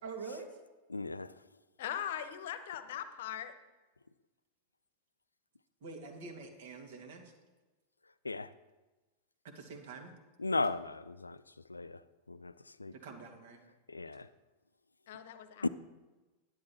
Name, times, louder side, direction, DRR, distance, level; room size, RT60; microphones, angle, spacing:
voice 1, 0.0-0.5 5.8-7.3 9.4-10.1 12.9-13.6, right 4 dB, 55° right, 2.1 m, -46 dB
voice 2, 0.9-1.3 8.2-8.5 10.4-11.4 11.7-12.0 12.3-12.5 12.8-12.9 13.9-14.3 15.6-15.7, left 3 dB, 80° left, 0.4 m, -35 dB
voice 3, 1.8-3.5 15.1-15.7, left 10 dB, 55° left, 0.9 m, -40 dB
10.5 x 10.5 x 4.3 m
figure-of-eight pair, 90°, 0 cm